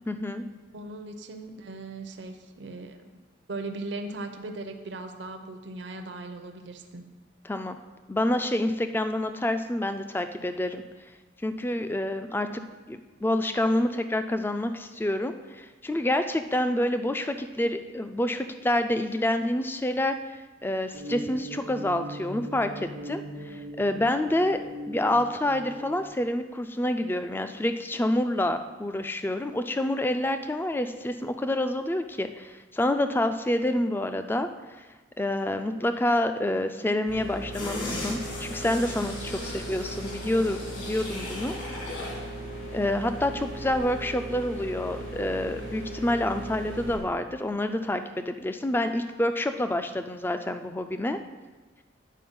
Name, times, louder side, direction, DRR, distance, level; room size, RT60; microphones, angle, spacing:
voice 1, 0.1-0.4 7.4-7.8 8.1-10.8 11.4-12.6 12.9-20.1 20.6-24.6 24.9-34.5 34.8-34.9 35.2-42.1 42.7-51.2, left 1 dB, 10° left, 9 dB, 0.3 m, -28 dB
voice 2, 0.7-3.1 3.5-7.0 39.4-39.6, right 2 dB, 65° right, 6 dB, 0.7 m, -38 dB
sound 1, 20.9-26.1, equal, 85° right, 1.1 m, -39 dB
sound 2, 37.1-47.0, right 1 dB, 85° left, 2.9 m, -38 dB
sound 3, 37.5-42.3 42.6-42.7, left 2 dB, 65° left, 2.1 m, -38 dB
9.4 x 4.3 x 5.4 m, 1.2 s
head